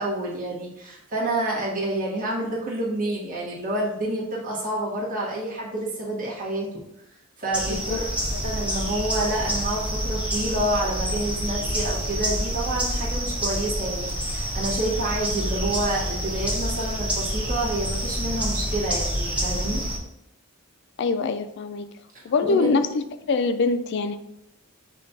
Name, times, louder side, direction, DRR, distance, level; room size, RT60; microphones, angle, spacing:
voice 1, 0.0-6.7 7.4-8.0 8.4-19.8 22.1-22.8, right 1 dB, 40° right, -5 dB, 1.2 m, -28 dB
sound 1, 7.5-20.0, equal, 5° right, 0.8 m, -27 dB
voice 2, 21.0-21.9 22.2-24.2, left 4 dB, 55° left, 10 dB, 0.3 m, -24 dB
5.1 x 2.3 x 4.0 m, 0.81 s
head